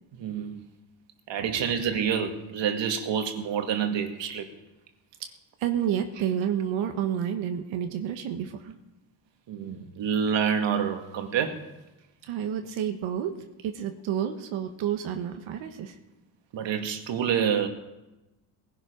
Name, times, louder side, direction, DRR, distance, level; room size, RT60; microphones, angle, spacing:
voice 1, 0.2-0.6 1.3-4.5 9.5-11.6 16.5-17.7, right 7 dB, 65° right, 2.0 m, -27 dB
voice 2, 5.6-8.7 12.3-13.3 13.6-15.9, right 9 dB, 85° right, 1.3 m, -29 dB
19.5 x 11.5 x 5.2 m
cardioid pair, 90°, 46 cm